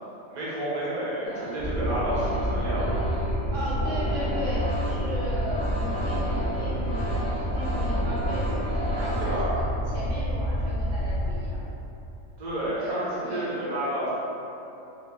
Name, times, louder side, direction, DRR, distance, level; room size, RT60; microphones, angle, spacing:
voice 1, 0.3-3.0 9.2-9.5 12.4-14.1, right 1 dB, 40° right, -8 dB, 0.9 m, -30 dB
sound 1, 1.2-9.3, equal, 35° left, 1.7 m, -34 dB
sound 2, 1.6-11.4, equal, 55° left, 0.7 m, -28 dB
voice 2, 3.5-11.6 12.8-13.5, equal, 70° right, -8 dB, 1.0 m, -36 dB
4.0 x 2.1 x 3.2 m, 2.9 s
omnidirectional pair, 1.3 m